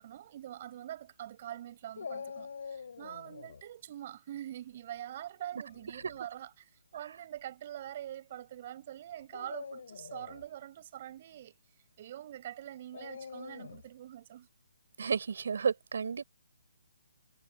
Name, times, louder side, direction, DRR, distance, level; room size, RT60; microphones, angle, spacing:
voice 1, 0.0-11.5 12.0-14.5, right 12 dB, 40° right, 5.8 m, -44 dB
Dog, 2.0-3.6 5.7-6.2 7.0-7.1 9.2-10.5 12.9-13.9, left 6 dB, 65° left, 7.3 m, -45 dB
voice 2, 15.0-16.2, right 6 dB, 65° right, 5.0 m, -31 dB
hypercardioid pair, 150°, 0 cm